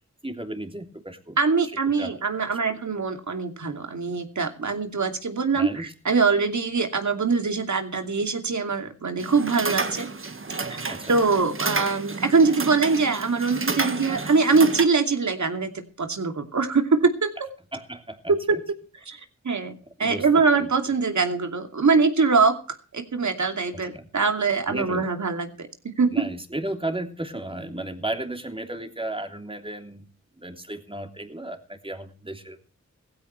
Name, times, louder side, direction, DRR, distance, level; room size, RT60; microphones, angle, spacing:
voice 1, 0.2-1.4 1.6-1.7 2.0-2.1 2.7-2.9 5.5-5.9 10.9-11.1 17.7-18.6 20.0-20.7 23.7-24.0 24.7-25.1 26.1-30.0 30.4-32.6, right 1 dB, 20° right, 5 dB, 3.1 m, -34 dB
voice 2, 1.4-10.1 10.7-17.3 18.3-18.8 19.1-19.2 19.4-19.7 20.0-22.5 22.9-26.3, right 4 dB, 75° right, 6 dB, 2.7 m, -23 dB
sound 1, 9.2-14.9, right 3 dB, 45° right, 1.6 m, -30 dB
18.0 x 15.5 x 3.2 m, 0.37 s
wide cardioid pair, 65°, 29 cm